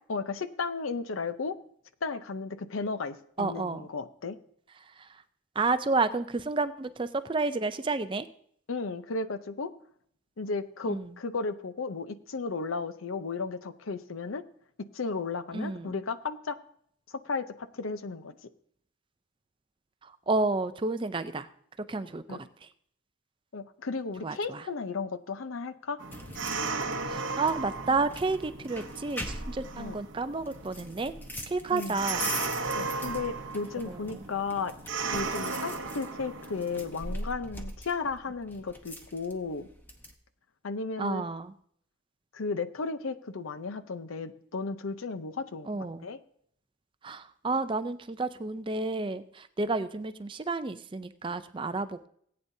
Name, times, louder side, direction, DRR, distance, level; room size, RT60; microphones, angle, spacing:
voice 1, 0.1-1.6 2.0-4.4 8.7-9.7 10.4-14.4 14.9-16.6 17.1-18.4 22.3-22.4 23.5-26.0 29.8-30.0 31.7-32.0 32.7-34.7 35.1-39.7 40.6-41.2 42.3-45.7 46.0-46.2, left 4 dB, 90° left, 12 dB, 0.7 m, -34 dB
voice 2, 3.4-3.9 4.8-5.2 5.5-8.3 10.9-11.2 15.5-16.0 20.0-21.5 21.9-22.7 24.2-24.7 27.1-31.1 31.5-32.3 33.9-34.3 41.0-41.5 45.6-46.1 47.0-52.1, right 3 dB, 25° right, 11 dB, 0.4 m, -31 dB
sound 1, 26.0-37.1, right 4 dB, 70° right, 0.8 m, -36 dB
sound 2, 26.1-40.1, left 1 dB, 10° left, 0.8 m, -42 dB
18.0 x 8.8 x 2.7 m, 0.65 s
head